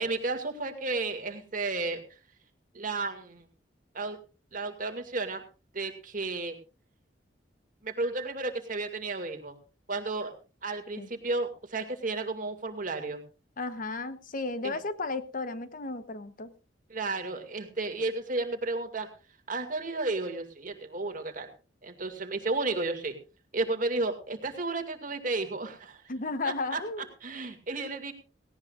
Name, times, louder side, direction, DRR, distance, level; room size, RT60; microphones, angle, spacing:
voice 1, 0.0-2.0 2.7-3.4 3.9-4.2 4.5-5.4 5.7-6.6 7.8-9.5 9.9-10.3 10.6-13.2 14.6-14.8 16.9-19.1 19.5-21.5 21.8-23.2 23.5-26.0 26.7-26.8 27.2-28.1, right 3 dB, 50° right, 6 dB, 2.2 m, -32 dB
voice 2, 13.6-16.5 26.1-27.1, left 3 dB, 50° left, 12 dB, 1.0 m, -34 dB
18.0 x 17.0 x 2.5 m, 0.33 s
head